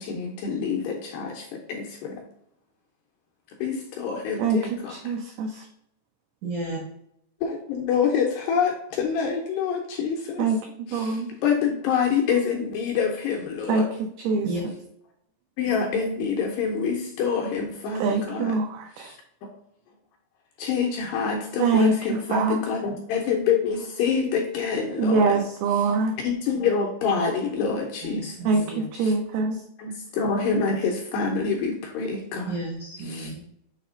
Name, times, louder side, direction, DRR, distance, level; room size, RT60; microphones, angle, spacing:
voice 1, 0.0-2.2 3.6-5.1 7.4-10.6 10.9-13.9 15.6-18.6 19.0-19.2 20.6-25.4 25.7-26.0 26.2-28.6 29.0-29.1 29.8-32.6 33.0-33.3, left 6 dB, 75° left, 1 dB, 2.5 m, -27 dB
voice 2, 4.9-5.5 10.4-10.6 10.9-11.3 13.7-13.8 14.3-14.5 18.0-19.1 21.6-22.6 25.0-26.1 28.5-29.6, right 4 dB, 90° right, 2 dB, 2.2 m, -23 dB
voice 3, 6.4-6.8 14.4-14.6 28.0-28.8 32.5-33.4, right 2 dB, 75° right, -3 dB, 1.8 m, -32 dB
7.1 x 2.9 x 5.0 m, 0.73 s
omnidirectional pair, 5.4 m